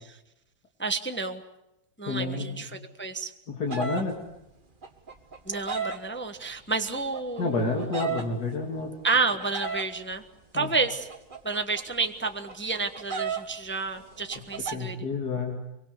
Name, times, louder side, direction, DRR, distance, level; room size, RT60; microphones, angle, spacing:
voice 1, 0.8-1.4 2.0-3.3 5.5-8.1 9.0-10.2 10.5-11.1 11.4-15.0, right 4 dB, 10° left, 7 dB, 0.9 m, -30 dB
voice 2, 2.1-2.7 3.6-4.2 7.4-8.9 10.5-10.7 14.7-15.6, left 3 dB, 55° left, 0 dB, 3.3 m, -29 dB
sound 1, 3.7-4.0 4.8-6.0 6.9-8.2 9.2-9.9 10.9-13.4 13.7-13.8 14.0-14.7, right 5 dB, 30° right, 1.6 m, -34 dB
24.5 x 23.5 x 8.1 m, 0.89 s
omnidirectional pair, 2.1 m